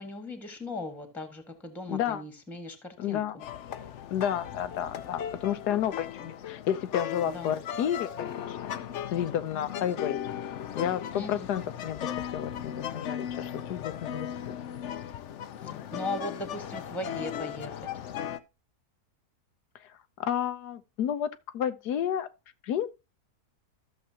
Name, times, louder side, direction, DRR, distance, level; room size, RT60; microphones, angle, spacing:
voice 1, 0.0-3.2 7.2-7.5 11.1-11.5 15.6-17.9, left 2 dB, ahead, 1.4 m, -38 dB
voice 2, 1.9-2.2 3.0-3.4 4.1-10.2 10.8-14.5 15.6-15.8 19.8-22.3 22.6-22.9, left 10 dB, 90° left, 1.4 m, -31 dB
sound 1, 3.4-18.4, left 9 dB, 60° left, 0.8 m, -37 dB
13.5 x 7.0 x 2.8 m
omnidirectional pair, 1.7 m